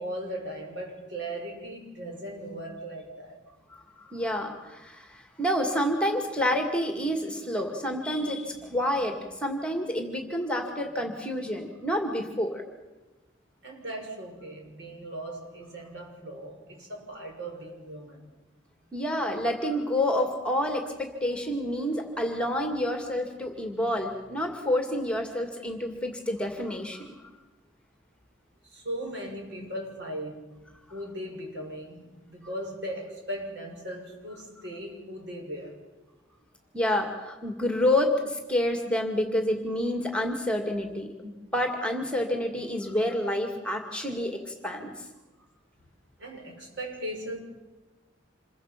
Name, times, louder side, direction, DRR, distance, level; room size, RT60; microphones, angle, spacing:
voice 1, 0.0-3.4 13.6-18.2 28.7-30.5 30.9-35.8 46.2-47.4, right 1 dB, 65° right, 1 dB, 6.1 m, -38 dB
voice 2, 4.0-12.6 18.9-27.1 36.7-44.9, left 1 dB, 5° left, 4 dB, 2.2 m, -28 dB
27.5 x 22.5 x 6.0 m, 1.1 s
head